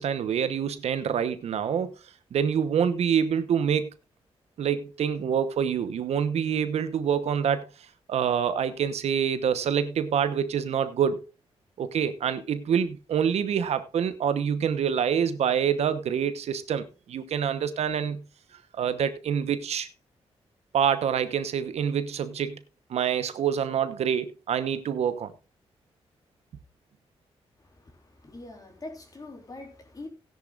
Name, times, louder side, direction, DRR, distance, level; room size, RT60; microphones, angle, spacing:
voice 1, 0.0-2.0 2.3-3.9 4.6-7.7 8.1-11.2 11.8-18.2 18.8-19.9 20.7-22.6 22.9-25.3, right 8 dB, 80° right, 1.0 m, -26 dB
voice 2, 27.6-30.1, left 2 dB, 35° left, 4.0 m, -44 dB
16.5 x 10.5 x 2.5 m
cardioid pair, 95°, 11 cm